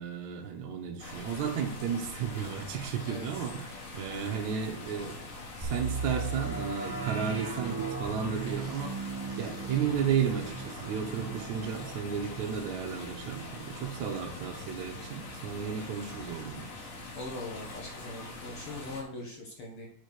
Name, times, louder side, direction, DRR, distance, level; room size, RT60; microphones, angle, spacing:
voice 1, 0.0-5.2 5.6-16.7, right 7 dB, 70° right, 1 dB, 2.3 m, -33 dB
sound 1, 1.0-19.0, left 2 dB, 90° left, 4.5 m, -44 dB
voice 2, 3.1-3.5 17.1-19.9, left 2 dB, 50° left, -1 dB, 1.9 m, -41 dB
sound 2, 5.6-15.3 15.7-15.8 16.3-16.5, right 4 dB, 35° right, 0.3 m, -38 dB
7.6 x 5.0 x 6.4 m, 0.70 s
omnidirectional pair, 3.7 m